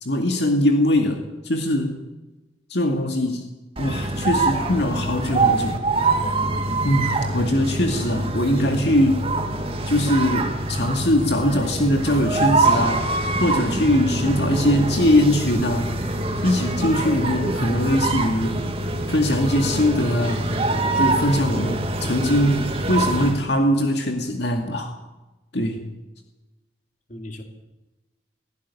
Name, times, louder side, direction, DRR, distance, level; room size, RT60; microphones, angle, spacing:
voice 1, 0.0-2.0 2.7-3.4 3.8-5.8 6.8-9.3 9.9-13.1 13.4-15.9 16.4-18.6 19.1-20.5 21.0-24.9 25.5-25.8, left 1 dB, 70° left, 4 dB, 2.2 m, -21 dB
sound 1, 3.8-23.4, right 2 dB, 30° right, 2.3 m, -24 dB
voice 2, 7.8-8.8 27.1-27.4, equal, 45° left, 4 dB, 2.9 m, -35 dB
18.0 x 16.5 x 9.9 m, 1.1 s
head